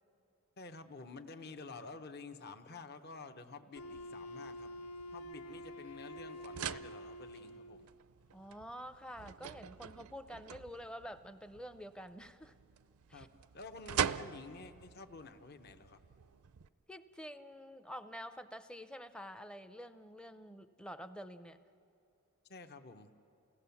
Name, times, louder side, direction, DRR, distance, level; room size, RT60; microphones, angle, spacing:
voice 1, 0.6-4.7 5.1-7.9 13.1-13.3 13.5-16.0 22.5-23.1, left 3 dB, 45° left, 7 dB, 0.8 m, -50 dB
Wind instrument woodwind instrument, 3.7-7.9, equal, 80° left, 0.6 m, -48 dB
sound 1, 3.8-16.7, right 8 dB, 80° right, 0.5 m, -44 dB
voice 2, 8.3-12.5 13.1-13.3 16.9-21.6, equal, 5° left, 10 dB, 0.5 m, -48 dB
30.0 x 17.5 x 7.0 m, 2.6 s
head